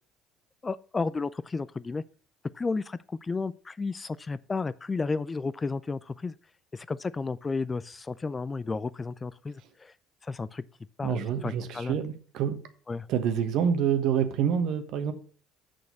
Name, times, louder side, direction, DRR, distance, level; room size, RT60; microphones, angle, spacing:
voice 1, 0.6-2.0 2.5-6.3 6.7-9.9 10.2-10.6 11.0-12.0 12.9-13.1, left 4 dB, 25° left, 0.4 m, -32 dB
voice 2, 11.0-12.6 13.1-15.1, right 8 dB, 60° right, 1.2 m, -27 dB
6.6 x 6.3 x 6.8 m
hypercardioid pair, 60°, 0 cm